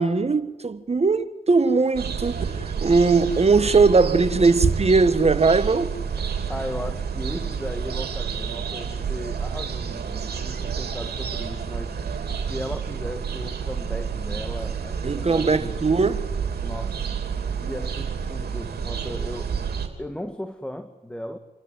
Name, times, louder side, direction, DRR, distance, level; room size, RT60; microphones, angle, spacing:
voice 1, 0.0-5.9 15.0-16.2, right 4 dB, 40° right, 1.6 m, -20 dB
sound 1, 1.9-19.9, right 6 dB, 70° right, 3.2 m, -29 dB
voice 2, 6.2-15.9 16.6-19.6 20.0-21.4, left 1 dB, 5° left, 1.7 m, -36 dB
28.0 x 12.0 x 9.8 m
supercardioid pair, 50°, 17 cm